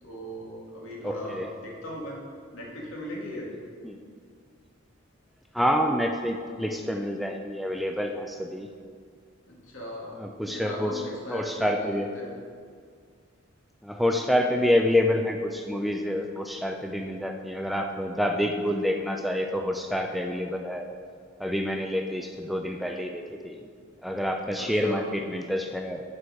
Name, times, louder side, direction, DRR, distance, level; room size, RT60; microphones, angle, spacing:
voice 1, 0.0-2.2 2.5-3.5 9.5-12.3 24.6-25.1, equal, 80° left, -3 dB, 1.9 m, -38 dB
voice 2, 1.0-1.5 3.8-4.0 5.5-8.7 10.2-11.0 11.3-12.1 13.8-20.9 21.4-23.6 24.0-26.0, left 1 dB, ahead, 4 dB, 0.3 m, -27 dB
7.0 x 4.7 x 6.3 m, 2.1 s
head